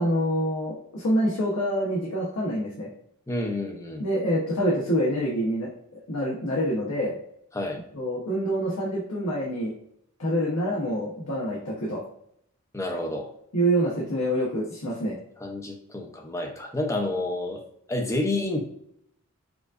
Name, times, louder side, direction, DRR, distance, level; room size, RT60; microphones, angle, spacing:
voice 1, 0.0-2.9 4.0-5.7 6.1-7.2 7.9-9.7 10.2-12.0 13.5-15.2, equal, 90° left, -4 dB, 0.9 m, -26 dB
voice 2, 3.3-4.1 7.5-7.8 12.7-13.3 15.4-17.6 17.9-18.6, left 2 dB, 15° left, 1 dB, 0.6 m, -29 dB
4.8 x 2.5 x 2.4 m, 0.70 s
head